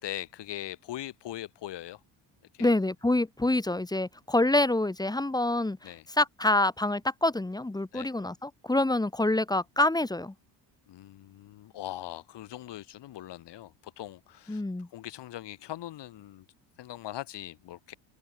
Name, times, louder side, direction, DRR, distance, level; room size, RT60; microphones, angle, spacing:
voice 1, 0.0-2.0 2.5-2.7 5.8-6.0 7.9-8.1 10.9-14.6 14.9-16.4 16.8-17.9, left 13 dB, 65° left, 6.5 m, -41 dB
voice 2, 2.6-10.3 14.5-14.9, left 2 dB, 10° left, 2.5 m, -26 dB
open air
cardioid pair, 140°, 45 cm